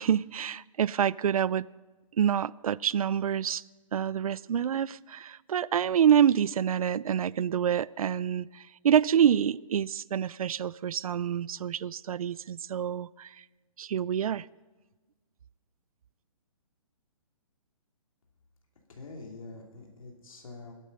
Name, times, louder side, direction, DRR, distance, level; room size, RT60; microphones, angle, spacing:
voice 1, 0.0-1.7 2.2-3.6 3.9-8.5 8.8-13.3 13.8-14.4, right 9 dB, 80° right, 0.4 m, -27 dB
voice 2, 18.9-20.7, left 3 dB, 70° left, 2.8 m, -45 dB
21.0 x 9.0 x 5.4 m
hypercardioid pair, 180°, 18 cm